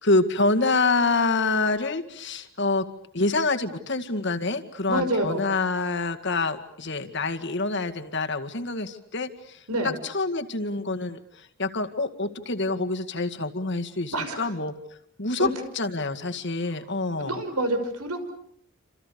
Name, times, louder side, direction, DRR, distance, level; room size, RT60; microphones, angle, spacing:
voice 1, 0.0-2.9 3.1-14.7 15.2-15.5 15.8-17.4, left 3 dB, 55° left, 6 dB, 2.1 m, -26 dB
voice 2, 4.9-5.4 9.7-10.0 14.1-14.5 15.4-15.5 17.2-18.3, right 1 dB, 90° right, 8 dB, 5.8 m, -27 dB
29.0 x 27.5 x 6.9 m, 0.67 s
head